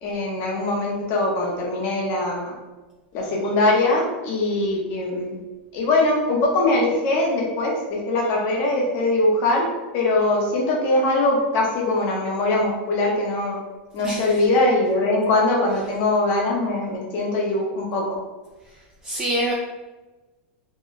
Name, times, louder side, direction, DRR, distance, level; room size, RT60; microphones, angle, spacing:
voice 1, 0.0-2.5 3.1-5.4 5.7-9.7 9.9-13.6 13.9-18.0, left 2 dB, 35° left, -2 dB, 0.8 m, -22 dB
voice 2, 14.0-14.4 19.0-19.5, right 1 dB, 15° right, -5 dB, 0.3 m, -25 dB
3.0 x 2.2 x 3.9 m, 1.2 s
supercardioid pair, 170°, 6 cm